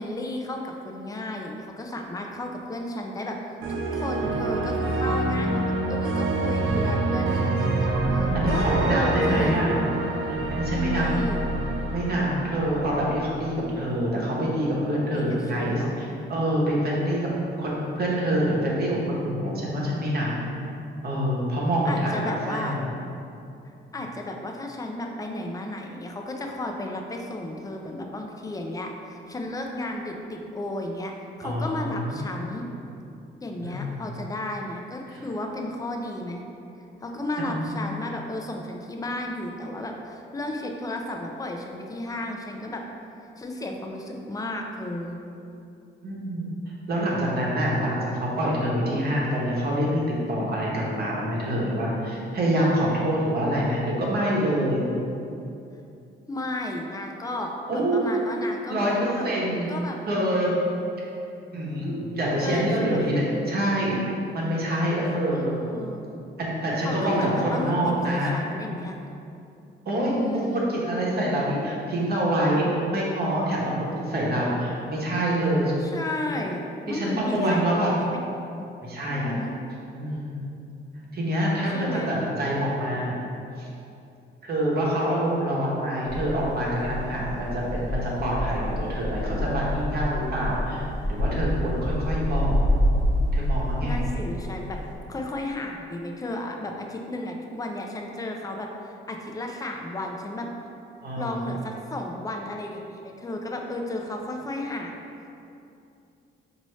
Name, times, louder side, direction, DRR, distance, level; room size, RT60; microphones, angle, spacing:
voice 1, 0.0-3.4 3.7-9.9 10.7-11.4 15.1-16.2 21.8-22.8 23.9-31.1 31.4-32.7 33.4-36.4 37.0-42.8 43.4-45.2 56.3-59.3 59.7-60.0 62.4-63.1 65.3-66.0 66.8-69.0 70.0-70.7 75.8-78.2 79.1-79.6 81.7-82.1 93.8-94.8 95.1-100.5 101.2-105.0, left 1 dB, 20° left, 2 dB, 0.4 m, -33 dB
sound 1, 3.6-13.7, right 2 dB, 80° right, 0.5 m, -26 dB
voice 2, 8.3-9.7 10.3-11.0 11.9-17.2 17.6-20.3 21.0-22.8 31.4-32.4 33.6-34.0 35.1-35.2 37.4-37.7 46.0-46.5 46.9-54.8 57.7-58.2 58.7-59.7 60.1-60.5 61.5-64.0 64.3-65.5 66.4-68.3 69.8-75.7 76.8-77.9 78.8-79.4 79.9-80.4 81.1-83.2 83.6-83.7 84.4-92.6 93.3-94.1 101.0-101.4, right 1 dB, 55° right, -5 dB, 1.0 m, -26 dB
sound 2, 86.1-94.9, equal, 35° left, 0.8 m, -27 dB
4.4 x 2.8 x 3.1 m, 2.7 s
cardioid pair, 90°, 20 cm